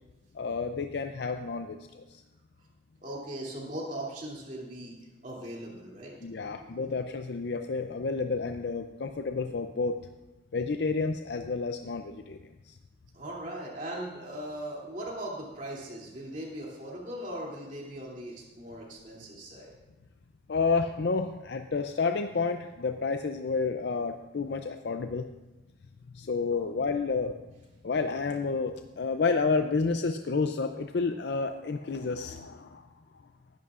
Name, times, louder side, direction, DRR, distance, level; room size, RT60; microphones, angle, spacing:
voice 1, 0.3-2.2 6.2-10.0 10.5-12.4 12.7-12.8 20.5-25.3 26.1-27.4 27.8-32.9, left 4 dB, 65° left, 7 dB, 0.5 m, -30 dB
voice 2, 3.0-5.0 5.2-6.7 13.1-19.7 26.5-26.6, right 1 dB, 45° right, -3 dB, 2.8 m, -39 dB
19.0 x 11.0 x 2.5 m, 1.1 s
head